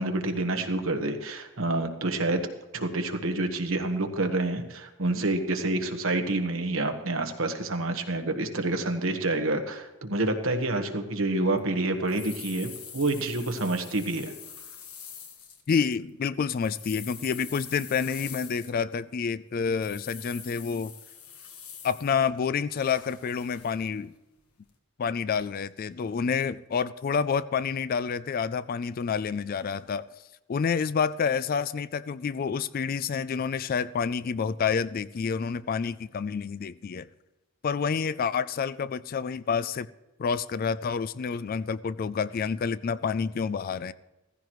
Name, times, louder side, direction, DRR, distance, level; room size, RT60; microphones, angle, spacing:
voice 1, 0.0-2.4 2.7-14.3, right 2 dB, 60° right, 6 dB, 1.3 m, -28 dB
sound 1, 11.6-11.7 12.1-16.0 16.4-19.0 19.8-22.1 22.7-23.8 24.4-24.5, left 7 dB, 80° left, 1.4 m, -44 dB
voice 2, 15.7-20.9 21.8-24.1 25.0-30.1 30.5-37.1 37.6-39.9 40.2-43.9, left 6 dB, 40° left, 16 dB, 0.3 m, -28 dB
15.5 x 15.0 x 3.1 m, 1.0 s
head